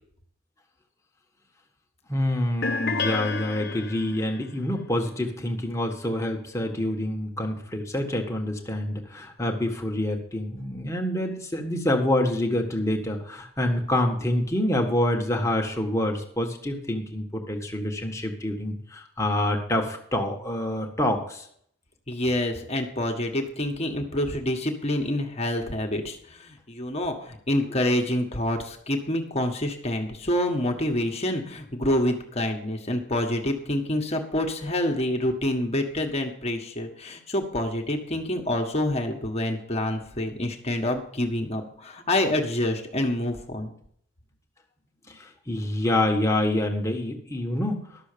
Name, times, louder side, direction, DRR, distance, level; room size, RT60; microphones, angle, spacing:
voice 1, 2.1-21.4 45.1-48.0, left 1 dB, 15° left, 2 dB, 1.6 m, -27 dB
sound 1, 2.6-4.4, left 4 dB, 50° left, 1.0 m, -29 dB
voice 2, 22.1-43.7, left 1 dB, 30° left, 3 dB, 1.6 m, -27 dB
12.0 x 6.9 x 6.8 m, 0.65 s
head